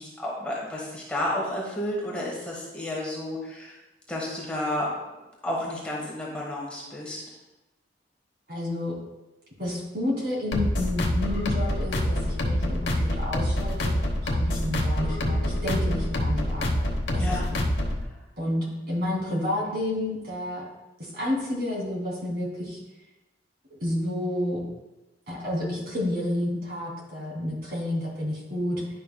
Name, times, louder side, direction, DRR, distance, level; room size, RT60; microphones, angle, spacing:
voice 1, 0.0-3.7 4.1-4.9 5.4-7.2 17.1-17.5, left 1 dB, 5° left, -5 dB, 1.4 m, -31 dB
voice 2, 8.5-9.0 9.6-16.8 17.1-17.4 18.4-20.6 21.0-22.8 23.8-24.6 25.3-28.8, left 1 dB, 55° right, -4 dB, 2.6 m, -30 dB
sound 1, 10.5-18.0, left 1 dB, 70° left, 1.0 m, -26 dB
10.5 x 5.6 x 2.3 m, 1.0 s
head